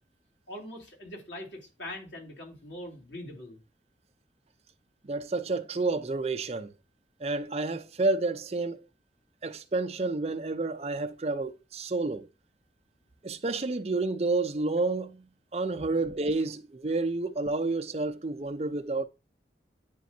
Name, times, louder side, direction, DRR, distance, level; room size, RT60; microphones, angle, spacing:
voice 1, 0.5-3.6, left 1 dB, 85° left, 2.9 m, -42 dB
voice 2, 5.0-6.7 7.2-8.8 9.4-12.3 13.2-15.3 15.5-19.0, right 3 dB, 35° right, 0.5 m, -30 dB
9.3 x 5.1 x 2.7 m
head